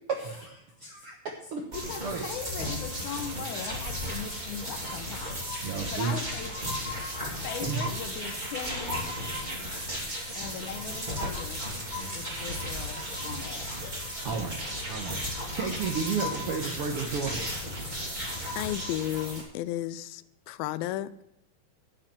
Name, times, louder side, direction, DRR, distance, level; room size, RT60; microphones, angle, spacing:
voice 1, 0.1-1.6 2.0-2.4 5.6-6.2 7.6-7.8 14.2-14.6 14.9-15.2 15.5-17.5, right 5 dB, 70° right, 1.3 m, -32 dB
voice 2, 1.7-5.4 5.9-6.5 7.4-9.1 10.3-11.6 12.1-13.7, left 7 dB, 70° left, 2.1 m, -39 dB
sound 1, 1.7-19.4, equal, 15° right, 2.3 m, -35 dB
voice 3, 18.6-21.2, left 13 dB, 90° left, 2.4 m, -33 dB
11.0 x 7.6 x 7.4 m
omnidirectional pair, 4.1 m